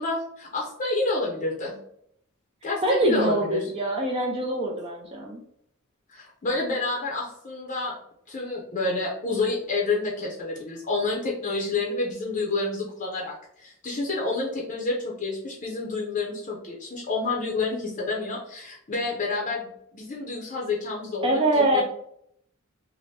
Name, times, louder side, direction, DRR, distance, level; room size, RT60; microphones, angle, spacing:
voice 1, 0.0-1.8 2.6-3.7 6.1-7.9 8.3-19.7 19.9-21.8, left 3 dB, 35° left, -2 dB, 0.6 m, -29 dB
voice 2, 2.8-5.4 21.2-21.8, right 1 dB, 25° right, 0 dB, 0.4 m, -24 dB
2.7 x 2.5 x 3.2 m, 0.71 s
head